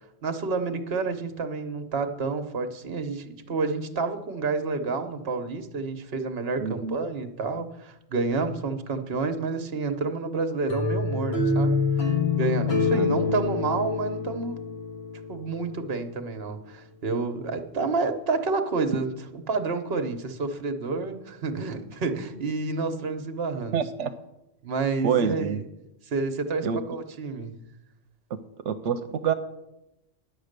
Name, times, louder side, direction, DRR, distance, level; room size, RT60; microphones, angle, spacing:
voice 1, 0.2-11.8 12.4-14.6 15.3-23.7 24.6-25.6 26.1-27.5, right 4 dB, 60° right, 9 dB, 1.2 m, -29 dB
voice 2, 6.6-7.0 12.9-13.2 23.7-24.1 25.0-25.6 26.6-26.8 28.6-29.3, right 7 dB, 85° right, 8 dB, 1.0 m, -27 dB
sound 1, 10.7-15.6, left 4 dB, 60° left, 1.8 m, -26 dB
11.0 x 8.2 x 6.6 m, 0.92 s
omnidirectional pair, 1.2 m